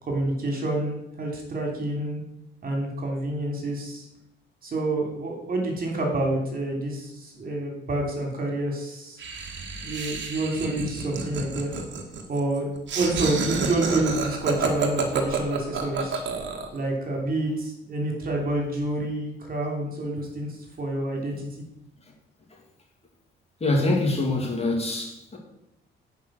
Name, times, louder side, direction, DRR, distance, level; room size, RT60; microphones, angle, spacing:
voice 1, 0.0-2.2 2.6-4.0 4.6-9.2 9.8-11.7 12.3-16.2 16.7-21.4, right 2 dB, 45° right, 1 dB, 3.2 m, -28 dB
Laughter, 9.2-16.8, right 5 dB, 65° right, 1.7 m, -30 dB
voice 2, 23.6-25.4, left 2 dB, 30° left, 0 dB, 2.6 m, -24 dB
9.3 x 5.5 x 6.4 m, 0.86 s
cardioid pair, 90°, 20 cm